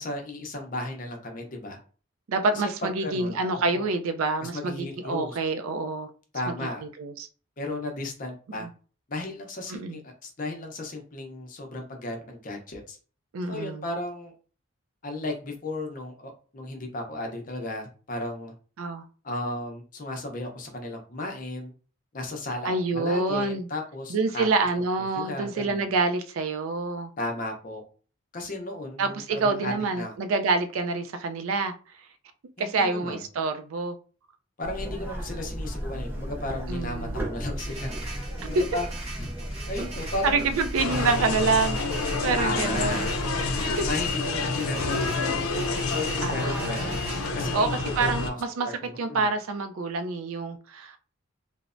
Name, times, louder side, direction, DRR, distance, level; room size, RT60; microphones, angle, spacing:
voice 1, 0.0-1.8 2.5-3.9 4.4-5.4 6.3-6.8 7.6-8.7 9.1-13.0 13.5-14.3 15.0-18.5 19.2-21.7 22.1-24.5 25.2-25.9 27.2-27.8 28.3-30.1 32.6-33.2 34.6-38.1 38.5-38.9 39.2-39.3 39.7-40.4 42.4-43.1 43.8-45.5 45.9-47.0 47.3-49.3, left 2 dB, 40° left, 0.6 m, -34 dB
voice 2, 2.3-6.1 6.5-6.6 6.8-7.3 8.6-8.7 9.7-10.0 13.3-13.9 18.8-19.0 22.6-23.7 24.1-27.1 29.0-31.7 32.6-34.0 36.7-37.3 38.5-38.8 40.2-43.1 43.6-43.9 46.2-47.0 47.5-48.7 49.0-51.0, right 3 dB, 75° right, 0.4 m, -27 dB
sound 1, 34.6-44.1, equal, 10° right, 0.4 m, -35 dB
sound 2, 37.6-47.5, right 3 dB, 30° right, 1.0 m, -42 dB
sound 3, 40.8-48.3, left 3 dB, 85° left, 0.5 m, -28 dB
3.1 x 2.0 x 2.4 m
head